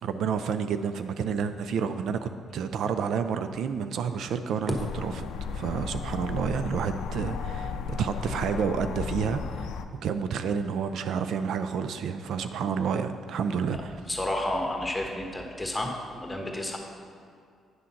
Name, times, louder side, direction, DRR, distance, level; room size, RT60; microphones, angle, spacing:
voice 1, 0.0-5.3 5.5-9.7 10.0-14.0, right 6 dB, 75° right, 9 dB, 0.3 m, -29 dB
sound 1, 4.7-9.9, left 5 dB, 85° left, 0.4 m, -34 dB
voice 2, 14.1-16.8, left 1 dB, 10° left, 1 dB, 1.2 m, -31 dB
9.4 x 3.7 x 5.8 m, 2.3 s
cardioid pair, 90°, 0 cm